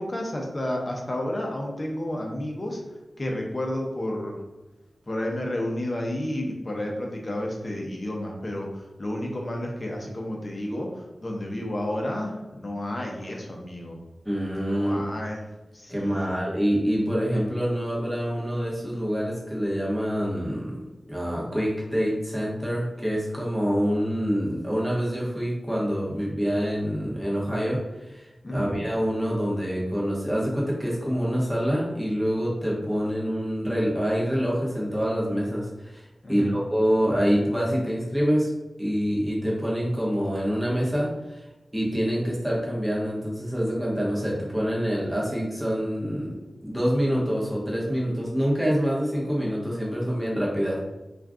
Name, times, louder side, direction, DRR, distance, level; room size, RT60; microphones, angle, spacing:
voice 1, 0.0-2.8 3.2-4.4 5.1-14.0 14.7-15.4 15.7-16.4 28.4-28.7 36.2-36.5, left 1 dB, 40° left, 0 dB, 0.7 m, -31 dB
voice 2, 14.2-15.0 15.9-20.8 21.1-38.5 38.8-41.4 41.7-50.8, equal, 5° right, -5 dB, 0.9 m, -26 dB
2.5 x 2.3 x 3.5 m, 1.1 s
wide cardioid pair, 70°, 0 cm